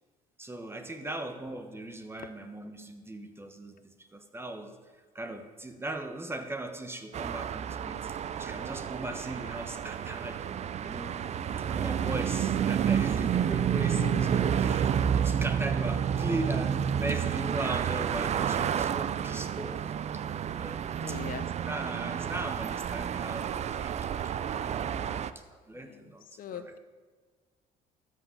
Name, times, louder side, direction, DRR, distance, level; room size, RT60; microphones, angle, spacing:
voice 1, 0.4-4.8 5.1-10.5 10.8-11.2 11.7-19.8 20.1-20.2 20.5-21.2 21.7-24.1 24.6-26.8, right 2 dB, 15° right, 8 dB, 1.2 m, -39 dB
sound 1, 7.1-25.3, right 8 dB, 40° right, 0.5 m, -30 dB
voice 2, 13.9-14.4 21.0-21.5 24.8-25.3 25.7-26.0 26.4-26.8, left 9 dB, 55° left, 12 dB, 0.7 m, -42 dB
13.0 x 6.5 x 7.2 m, 1.5 s
cardioid pair, 110°, 17 cm